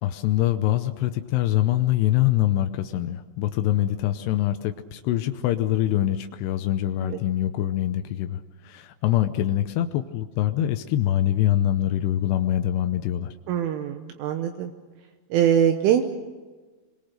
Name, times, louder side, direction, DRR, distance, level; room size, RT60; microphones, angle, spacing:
voice 1, 0.0-13.3, left 13 dB, 90° left, 8 dB, 2.3 m, -24 dB
voice 2, 13.5-14.7 15.3-16.0, right 9 dB, 75° right, 6 dB, 3.4 m, -22 dB
27.5 x 22.5 x 6.6 m, 1.3 s
omnidirectional pair, 5.9 m